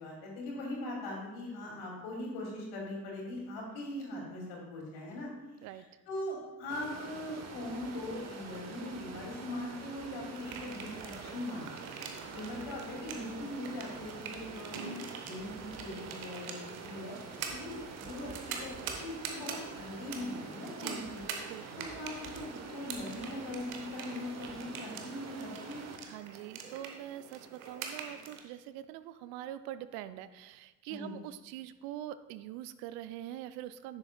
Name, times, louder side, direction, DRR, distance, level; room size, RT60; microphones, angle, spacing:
voice 1, 0.0-5.3 5.7-12.0 12.3-14.9 15.1-21.2 21.8-25.8 30.9-31.1, left 1 dB, 60° left, -2 dB, 2.4 m, -41 dB
Stream, 6.7-26.0, right 5 dB, 40° right, 1.0 m, -46 dB
sound 1, 10.4-28.4, right 6 dB, 75° right, 0.9 m, -45 dB
voice 2, 21.5-21.9 26.0-34.0, right 12 dB, 55° right, 14 dB, 0.5 m, -44 dB
10.5 x 6.7 x 2.2 m, 1.1 s
figure-of-eight pair, 50°, 43 cm